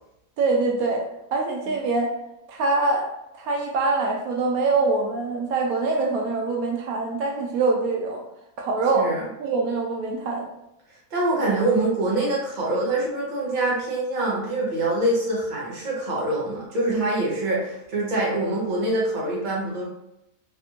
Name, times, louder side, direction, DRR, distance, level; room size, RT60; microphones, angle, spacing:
voice 1, 0.4-1.0 1.3-2.1 2.5-3.1 3.3-8.2 8.6-9.1 9.4-10.5, right 3 dB, 80° right, 0 dB, 1.0 m, -24 dB
voice 2, 11.1-19.8, right 2 dB, 35° right, -4 dB, 0.9 m, -25 dB
3.3 x 2.4 x 2.9 m, 0.86 s
omnidirectional pair, 1.6 m